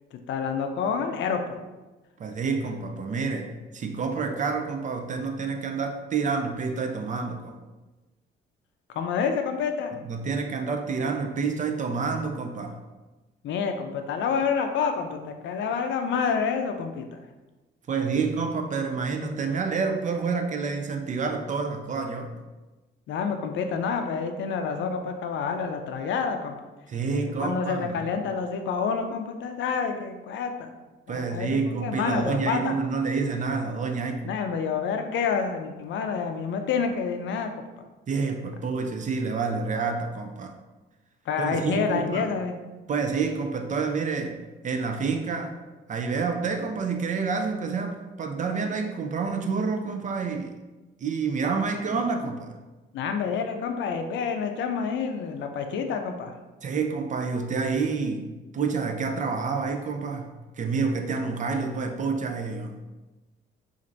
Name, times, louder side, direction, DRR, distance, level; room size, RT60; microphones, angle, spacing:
voice 1, 0.3-1.6 8.9-9.9 13.4-17.2 23.1-26.6 27.4-30.7 31.1-32.7 34.2-37.5 41.3-42.5 52.9-56.3, left 6 dB, 70° left, 6 dB, 0.4 m, -28 dB
voice 2, 2.2-7.6 10.0-12.8 17.9-22.3 26.9-28.1 31.1-34.3 38.1-40.5 41.4-42.3 42.9-44.4 44.6-45.6 45.9-50.5 51.0-52.5 56.6-58.3 58.5-60.3 60.6-62.8, right 4 dB, 40° right, 5 dB, 0.4 m, -28 dB
4.3 x 2.5 x 2.6 m, 1.2 s
cardioid pair, 90°, 20 cm